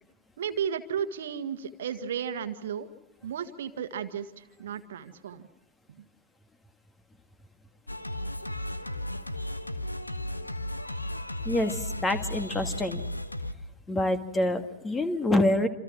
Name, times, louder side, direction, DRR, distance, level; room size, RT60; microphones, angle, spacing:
voice 1, 0.4-2.9 3.2-5.5 6.0-6.1, right 8 dB, 60° right, 9 dB, 1.6 m, -34 dB
Singing, 7.9-13.5, left 1 dB, 85° left, 1.3 m, -35 dB
voice 2, 11.5-13.0 13.9-15.7, left 1 dB, 15° left, 9 dB, 2.2 m, -26 dB
28.0 x 27.5 x 6.2 m, 0.92 s
figure-of-eight pair, 90°, 0 cm